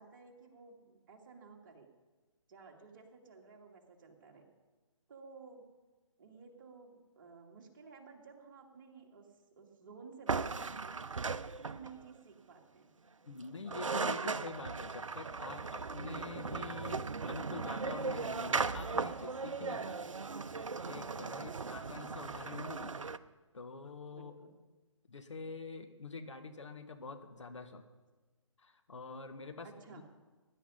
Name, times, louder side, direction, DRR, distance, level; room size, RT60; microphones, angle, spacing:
voice 1, 0.0-1.9 2.5-4.4 5.1-5.7 6.2-9.3 9.5-11.0 11.6-13.1 21.3-21.8 24.1-24.6 29.6-30.0, right 5 dB, 40° right, 1 dB, 2.5 m, -54 dB
sound 1, 10.3-12.0 13.4-13.5 13.7-23.2, right 4 dB, 75° right, 0.7 m, -37 dB
voice 2, 13.3-20.2 20.5-22.9 23.5-24.3 25.1-27.8 28.6-30.0, left 4 dB, 65° left, 7 dB, 1.6 m, -46 dB
19.0 x 11.0 x 5.6 m, 1.2 s
figure-of-eight pair, 140°, 16 cm